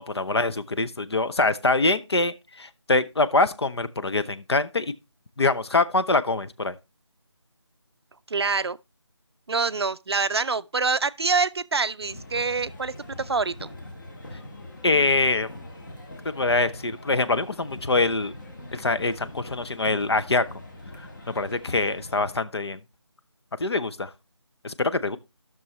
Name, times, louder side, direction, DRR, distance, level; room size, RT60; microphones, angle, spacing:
voice 1, 0.0-4.9 5.4-6.7 14.8-15.5 16.3-18.3 18.7-20.4 21.4-22.8 23.6-24.1 24.6-25.2, left 3 dB, 60° left, 0.7 m, -24 dB
voice 2, 8.3-8.8 9.5-13.7, right 4 dB, 60° right, 0.4 m, -26 dB
sound 1, 12.0-22.4, left 1 dB, 40° left, 1.5 m, -42 dB
14.5 x 6.2 x 3.0 m
figure-of-eight pair, 170°, 15 cm